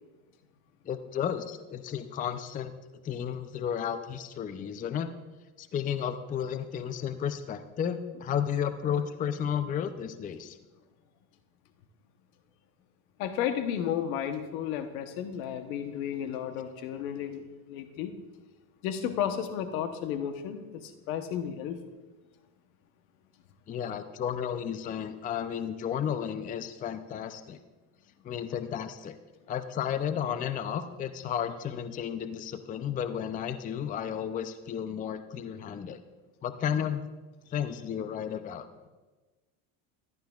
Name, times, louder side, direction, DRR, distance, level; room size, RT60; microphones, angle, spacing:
voice 1, 0.8-2.7 3.0-5.1 5.6-10.6 23.7-27.6 28.2-29.2 29.5-36.0 36.4-37.0 37.5-38.7, left 8 dB, 20° left, 11 dB, 0.4 m, -33 dB
voice 2, 13.2-18.1 18.8-21.8, left 9 dB, 80° left, 8 dB, 1.0 m, -33 dB
14.5 x 11.5 x 2.4 m, 1.2 s
supercardioid pair, 115°, 41 cm